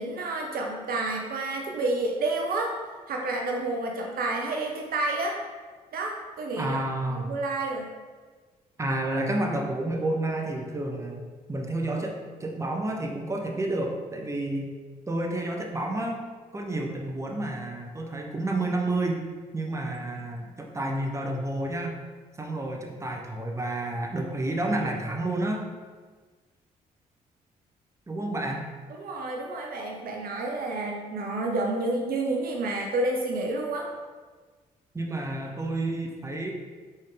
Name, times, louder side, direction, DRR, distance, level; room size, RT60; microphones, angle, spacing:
voice 1, 0.0-2.8 3.1-5.4 5.9-6.8 7.1-7.9 28.9-33.9, right 2 dB, 50° right, 1 dB, 0.5 m, -29 dB
voice 2, 6.6-7.3 8.8-11.2 11.5-14.7 15.1-16.2 16.5-22.0 22.4-25.7 28.1-28.6 34.9-36.5, right 2 dB, 15° right, 1 dB, 0.7 m, -30 dB
4.2 x 3.5 x 3.3 m, 1.4 s
figure-of-eight pair, 40°, 20 cm